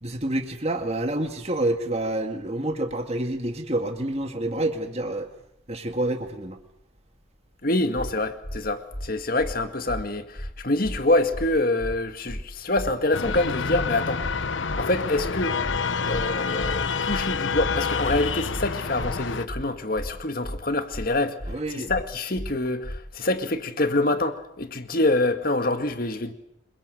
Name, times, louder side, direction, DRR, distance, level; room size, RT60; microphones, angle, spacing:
voice 1, 0.0-5.3 5.7-6.6 21.5-21.9, right 1 dB, 30° right, 2.1 m, -28 dB
voice 2, 7.6-14.2 14.8-15.6 16.0-21.4 21.7-26.3, left 2 dB, 45° left, 2.0 m, -26 dB
sound 1, 8.0-8.1 8.4-8.6 8.9-9.1 9.4-9.6 9.9-10.0 10.4-10.5 10.8-11.0 11.3-11.5 11.8-12.0 12.3-12.4 12.8-12.9 13.2-13.4 13.7-13.9 14.2-14.4 14.7-14.8 15.2-15.3 15.6-15.8 16.1-16.3 16.6-16.8 17.1-17.2 17.6-17.7 18.0-18.2 18.5-18.7 19.0-19.2 19.5-19.6 20.0-20.1 20.4-20.6 20.9-21.1 21.4-21.6 21.9-22.0 22.4-22.5 22.8-23.0, equal, 30° left, 3.5 m, -34 dB
sound 2, 13.1-19.5, left 5 dB, 70° left, 1.0 m, -28 dB
27.5 x 22.5 x 7.9 m
head